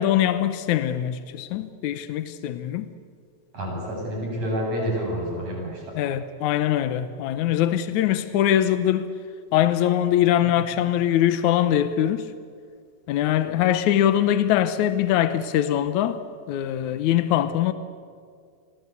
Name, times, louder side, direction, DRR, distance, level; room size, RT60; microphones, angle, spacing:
voice 1, 0.0-2.9 6.0-9.1 9.5-12.3 13.1-16.2 16.5-17.7, left 11 dB, 85° left, 2.3 m, -22 dB
voice 2, 3.5-6.0, equal, 70° right, 9.3 m, -28 dB
29.5 x 23.5 x 8.4 m
omnidirectional pair, 3.3 m